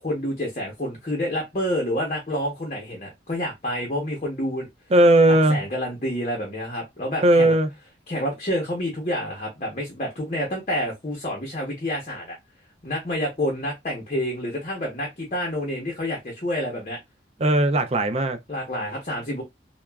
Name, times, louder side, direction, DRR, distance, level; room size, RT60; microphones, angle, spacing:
voice 1, 0.0-4.7 5.5-7.5 8.1-12.4 12.8-17.0 18.5-19.4, left 1 dB, 35° left, 0.8 m, -28 dB
voice 2, 4.9-5.6 7.2-7.7 17.4-18.4, right 1 dB, 35° right, 0.3 m, -17 dB
2.9 x 2.2 x 2.3 m
head